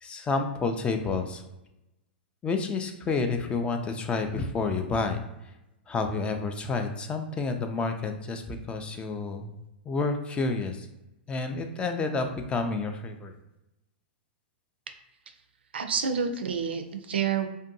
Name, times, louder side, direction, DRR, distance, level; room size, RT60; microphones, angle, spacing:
voice 1, 0.0-1.4 2.4-5.2 5.9-9.5 9.9-10.9 11.3-13.4, left 4 dB, 20° left, 6 dB, 0.3 m, -29 dB
voice 2, 15.7-17.5, right 6 dB, 80° right, 7 dB, 0.4 m, -28 dB
2.5 x 2.2 x 2.6 m, 0.94 s
hypercardioid pair, 110°, 6 cm